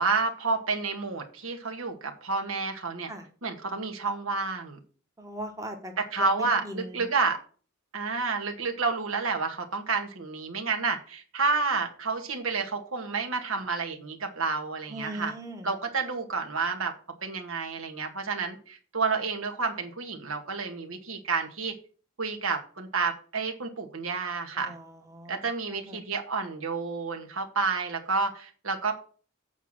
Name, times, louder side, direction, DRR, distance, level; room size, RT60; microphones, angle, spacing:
voice 1, 0.0-3.1 3.4-4.8 6.0-7.4 7.9-15.3 15.6-16.9 17.2-21.7 22.2-24.7 25.3-28.9, right 4 dB, 80° right, 4 dB, 1.8 m, -30 dB
voice 2, 5.2-5.9 6.2-7.0 14.9-15.7 24.5-25.4 25.7-26.0, right 1 dB, 15° right, 4 dB, 1.1 m, -39 dB
8.2 x 4.7 x 7.4 m, 0.40 s
head